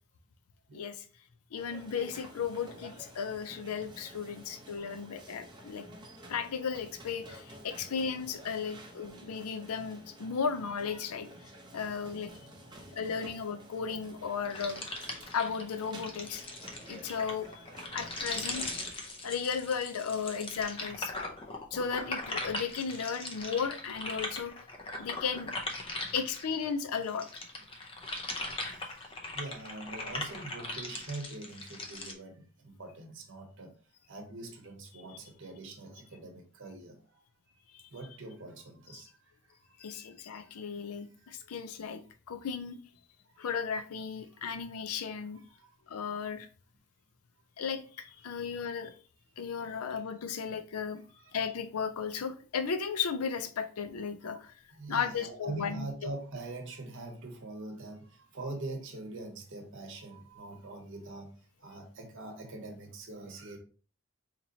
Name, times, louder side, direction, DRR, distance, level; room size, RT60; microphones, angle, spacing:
voice 1, 0.7-1.0 1.5-5.8 6.3-11.3 11.7-12.3 12.9-14.8 15.3-16.5 16.9-17.6 17.9-18.7 19.2-21.1 21.7-24.5 25.0-25.5 26.1-27.3 37.7-37.8 38.9-39.0 39.8-42.0 42.3-42.8 43.4-45.4 45.9-46.5 47.6-48.9 49.4-51.0 51.3-54.5 54.9-55.9, left 6 dB, 85° left, 0.5 m, -35 dB
sound 1, 1.6-18.9, equal, 20° right, 0.6 m, -51 dB
voice 2, 4.8-5.1 12.8-13.0 28.7-28.8 29.3-33.7 34.1-37.0 37.9-39.1 46.1-46.2 48.4-48.5 51.2-51.3 54.2-54.4 54.7-61.3 61.6-63.6, right 2 dB, 55° right, 0.8 m, -43 dB
sound 2, 14.4-26.7 27.0-32.1, left 2 dB, 25° left, 0.5 m, -40 dB
4.0 x 2.9 x 2.7 m
head